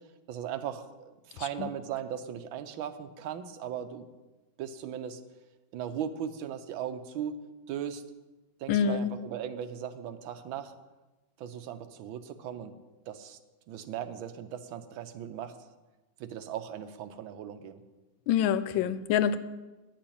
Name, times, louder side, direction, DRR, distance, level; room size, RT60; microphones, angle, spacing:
voice 1, 0.3-4.1 4.6-5.2 5.7-7.3 7.7-8.0 8.6-10.7 11.4-12.7 13.1-13.4 13.7-15.6 16.2-17.8, right 9 dB, 85° right, 9 dB, 1.6 m, -38 dB
voice 2, 1.4-1.7 8.7-9.1 18.3-19.4, left 8 dB, 90° left, 13 dB, 1.4 m, -26 dB
10.0 x 5.8 x 8.6 m, 1.1 s
omnidirectional pair, 2.1 m